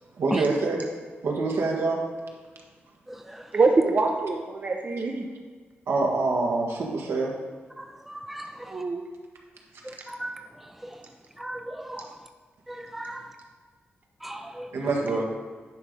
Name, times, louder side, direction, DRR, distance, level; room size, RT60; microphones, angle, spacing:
voice 1, 0.2-0.8 1.2-2.0 5.9-7.3 14.7-15.2, right 3 dB, 80° right, -1 dB, 1.5 m, -25 dB
voice 2, 3.5-5.3 8.7-9.0, right 3 dB, 45° right, 2 dB, 0.7 m, -24 dB
voice 3, 11.4-12.0 12.8-13.2 14.2-14.7, right 1 dB, 5° right, 5 dB, 0.5 m, -37 dB
10.0 x 3.7 x 5.4 m, 1.5 s
wide cardioid pair, 100°, 4 cm